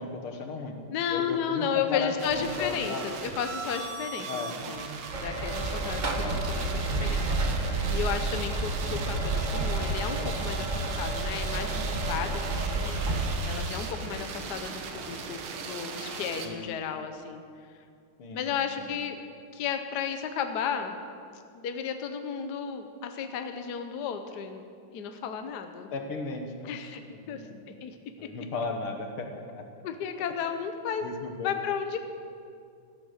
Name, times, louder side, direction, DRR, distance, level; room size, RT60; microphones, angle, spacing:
voice 1, 0.0-0.8 1.1-3.0 4.3-4.5 5.1-5.3 16.4-16.6 18.2-18.9 25.9-26.8 27.1-27.6 28.2-29.7 31.0-31.5, left 3 dB, 80° left, 5 dB, 2.2 m, -36 dB
voice 2, 0.9-7.3 7.6-13.0 13.4-17.4 18.3-19.2 19.5-21.0 21.6-24.6 24.9-25.9 26.6-27.0 27.3-28.0 29.8-31.1 31.4-32.0, left 7 dB, 60° left, 7 dB, 1.3 m, -33 dB
sound 1, 2.2-16.5, right 5 dB, 85° right, 2.0 m, -38 dB
sound 2, 5.1-13.4, right 2 dB, 25° right, 1.2 m, -30 dB
13.5 x 12.0 x 6.5 m, 2.3 s
omnidirectional pair, 2.3 m